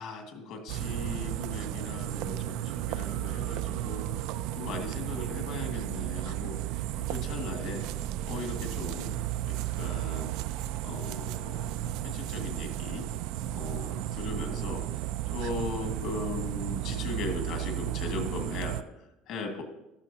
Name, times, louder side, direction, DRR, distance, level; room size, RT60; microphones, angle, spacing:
voice 1, 0.0-4.1 4.5-6.6 7.1-7.8 8.3-9.2 9.4-10.3 10.8-11.7 12.0-13.1 13.5-15.0 15.3-19.6, left 3 dB, 55° left, 4 dB, 1.8 m, -38 dB
sound 1, 0.7-18.8, right 13 dB, 65° right, 0.4 m, -34 dB
14.0 x 12.0 x 2.8 m, 0.94 s
cardioid pair, 165°, 0 cm